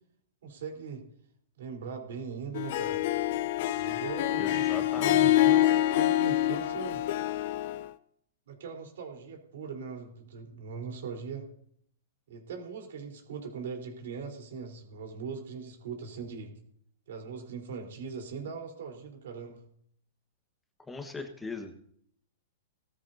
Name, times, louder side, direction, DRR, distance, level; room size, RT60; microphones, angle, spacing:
voice 1, 0.4-1.0 1.6-3.1 3.7-7.0 8.5-11.5 12.3-16.5 17.1-19.6, right 5 dB, 75° right, 2 dB, 4.0 m, -40 dB
Harp, 2.5-7.9, left 13 dB, 55° left, 0.7 m, -26 dB
voice 2, 4.4-5.5 20.9-21.7, left 3 dB, 10° left, 6 dB, 1.3 m, -40 dB
18.5 x 13.5 x 2.8 m, 0.65 s
hypercardioid pair, 135°, 0 cm